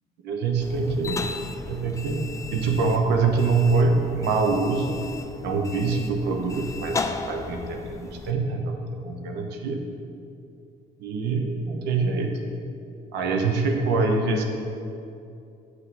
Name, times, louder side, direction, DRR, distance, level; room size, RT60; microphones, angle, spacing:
voice 1, 0.2-1.3 1.7-5.0 5.4-7.0 7.3-9.8 11.0-12.4 13.1-14.4, right 4 dB, 85° right, 4 dB, 0.9 m, -24 dB
sound 1, 0.6-8.3, left 4 dB, 20° left, 0.4 m, -36 dB
7.5 x 5.9 x 3.8 m, 2.6 s
cardioid pair, 110°, 17 cm